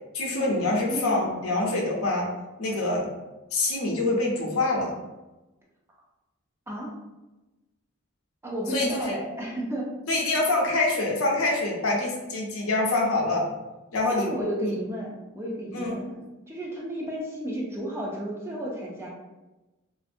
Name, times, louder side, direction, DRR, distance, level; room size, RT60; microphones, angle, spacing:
voice 1, 0.1-2.3 2.6-3.1 3.5-4.9 8.7-9.1 10.1-13.5 13.9-14.3 14.6-14.7 15.7-16.0, left 2 dB, 70° left, -1 dB, 0.6 m, -25 dB
voice 2, 0.9-1.4 6.7-6.9 8.4-9.9 14.1-19.1, right 1 dB, 10° right, -3 dB, 0.4 m, -33 dB
2.5 x 2.5 x 2.5 m, 1.1 s
head